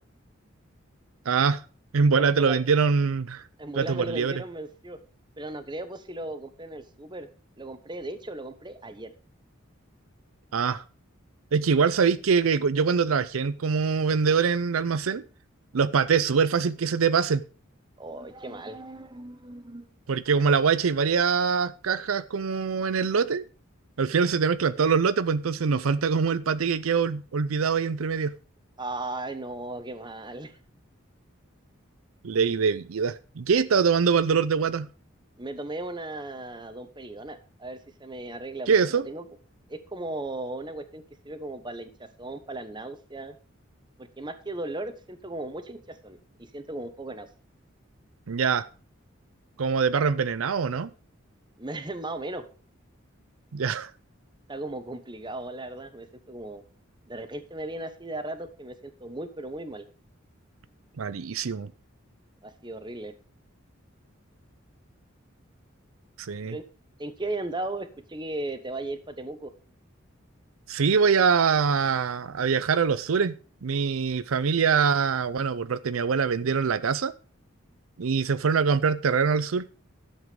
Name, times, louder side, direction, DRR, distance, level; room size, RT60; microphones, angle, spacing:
voice 1, 1.3-1.6 1.9-3.4 3.7-4.3 10.5-10.8 11.5-15.2 15.7-17.4 20.1-23.4 24.0-28.3 32.2-34.9 38.7-39.0 48.3-48.7 49.6-50.9 53.5-53.9 61.0-61.7 66.2-66.6 70.7-73.4 73.6-77.1 78.0-79.7, right 5 dB, 90° right, 0.5 m, -24 dB
voice 2, 2.2-2.7 3.6-5.0 5.4-7.3 7.6-9.1 18.0-19.8 28.8-30.6 35.4-39.2 39.7-43.4 44.0-47.3 51.6-52.4 54.5-56.6 57.1-59.9 62.4-63.1 66.5-66.6 67.0-69.5, right 2 dB, 20° right, 1.1 m, -36 dB
11.5 x 7.3 x 5.1 m
head